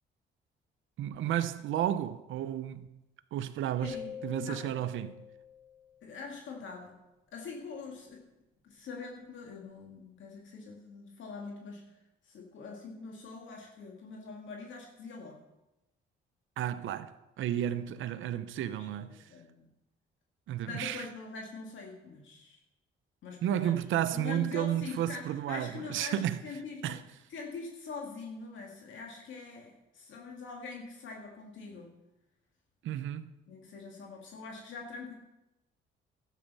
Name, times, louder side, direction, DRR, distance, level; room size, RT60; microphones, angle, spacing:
voice 1, 1.0-2.9 3.3-4.0 4.2-5.2 16.6-19.2 20.5-21.0 23.4-26.4 26.8-27.0 32.8-33.3, right 11 dB, 80° right, 0.8 m, -32 dB
voice 2, 3.8-4.7 6.0-6.9 7.3-8.2 8.6-15.4 17.6-17.7 18.7-19.7 20.6-22.6 23.2-23.8 24.1-27.0 27.3-31.9 33.5-35.1, left 4 dB, 75° left, 2.1 m, -44 dB
sound 1, 3.8-6.1, left 7 dB, 35° left, 2.9 m, -45 dB
12.5 x 8.4 x 5.5 m
cardioid pair, 90°, 20 cm